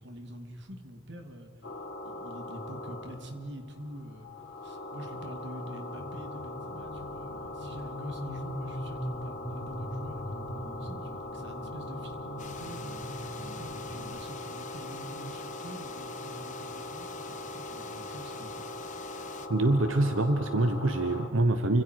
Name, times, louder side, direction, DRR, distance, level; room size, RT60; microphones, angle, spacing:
voice 1, 0.0-1.5 2.0-4.3 4.6-13.0 13.4-18.9, equal, 65° right, 5 dB, 2.9 m, -45 dB
sound 1, 1.6-21.3, left 2 dB, 60° left, 2.7 m, -41 dB
sound 2, 6.0-14.1, equal, 10° right, 6.7 m, -41 dB
sound 3, 12.4-19.5, left 6 dB, 40° left, 1.4 m, -48 dB
voice 2, 19.5-21.8, right 2 dB, 85° right, 8 dB, 1.1 m, -25 dB
29.5 x 26.0 x 4.8 m, 2.2 s
head